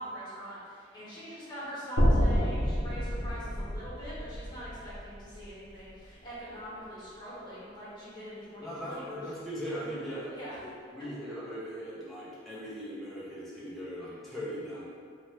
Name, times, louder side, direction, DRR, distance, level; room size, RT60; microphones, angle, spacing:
voice 1, 0.0-9.2 10.3-10.6, equal, 25° left, -11 dB, 1.0 m, -43 dB
sound 1, 2.0-6.2, equal, 70° left, 0.5 m, -29 dB
voice 2, 8.6-10.4 10.9-14.9, equal, ahead, -10 dB, 0.4 m, -39 dB
2.8 x 2.1 x 3.1 m, 2.2 s
head